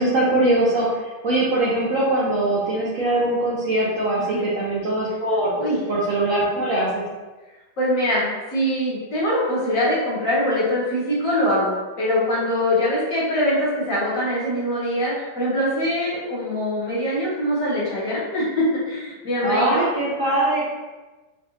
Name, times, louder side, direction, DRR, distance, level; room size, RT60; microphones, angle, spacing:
voice 1, 0.0-5.6 5.9-7.0 19.4-20.6, right 1 dB, 70° right, -6 dB, 0.8 m, -22 dB
voice 2, 7.8-19.9, equal, 50° left, -8 dB, 1.3 m, -23 dB
4.6 x 2.4 x 2.8 m, 1.2 s
omnidirectional pair, 2.0 m